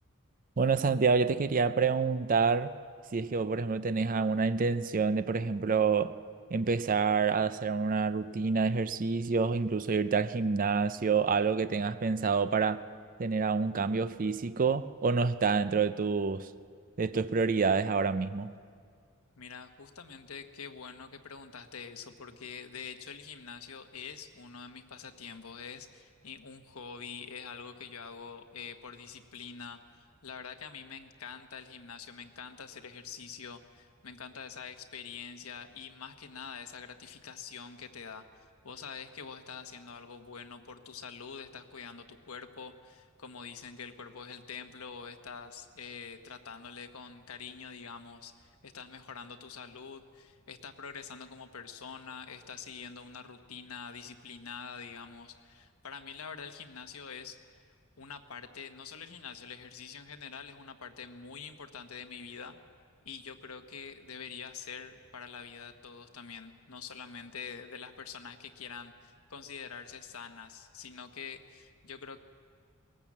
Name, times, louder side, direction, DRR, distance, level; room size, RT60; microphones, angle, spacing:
voice 1, 0.6-2.7 3.1-6.2 6.5-12.8 13.2-16.5 17.0-18.5, right 5 dB, 40° right, 0.5 m, -28 dB
voice 2, 19.4-57.6 58.0-62.6 63.0-72.2, left 6 dB, 80° left, 1.2 m, -45 dB
19.5 x 18.0 x 7.4 m
head